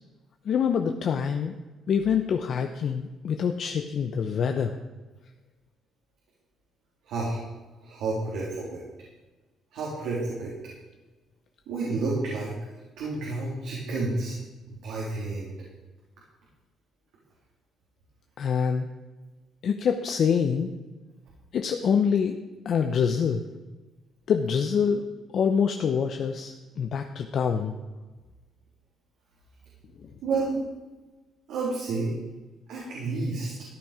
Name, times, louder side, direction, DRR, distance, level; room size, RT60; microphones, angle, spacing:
voice 1, 0.5-1.6 1.9-4.7 18.4-18.9 19.6-20.7 21.5-22.4 22.6-23.4 24.3-25.1 25.3-27.7, left 7 dB, 50° left, 5 dB, 0.7 m, -25 dB
voice 2, 7.0-7.4 7.8-8.8 9.7-10.5 11.7-12.5 13.0-14.3 14.7-15.5 30.2-30.6 31.5-32.2 32.7-33.5, right 3 dB, 85° right, -4 dB, 3.1 m, -30 dB
14.0 x 9.1 x 5.0 m, 1.2 s
cardioid pair, 135°, 0 cm